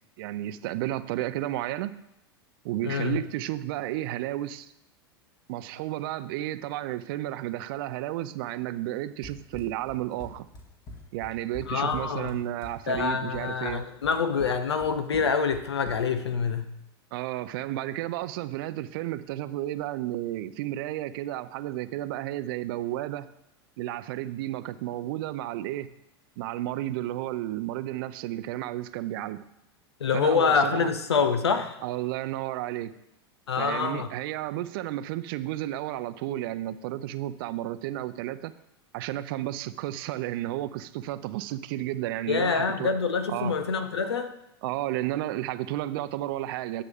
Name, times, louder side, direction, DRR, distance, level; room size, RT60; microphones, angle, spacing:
voice 1, 0.2-2.0 2.6-4.7 5.5-10.5 11.1-13.8 17.1-23.3 23.8-25.9 26.4-29.4 30.1-30.9 31.8-32.9 33.6-38.5 38.9-42.9 43.3-43.6 44.6-46.8, right 14 dB, 60° right, 0.5 m, -32 dB
voice 2, 2.8-3.2 11.7-12.4 12.9-16.7 30.0-31.8 33.5-34.1 42.3-44.3, left 5 dB, 85° left, 0.9 m, -26 dB
Run, 9.2-16.3, left 2 dB, 30° left, 2.0 m, -45 dB
11.0 x 6.8 x 3.6 m
hypercardioid pair, 95°, 13 cm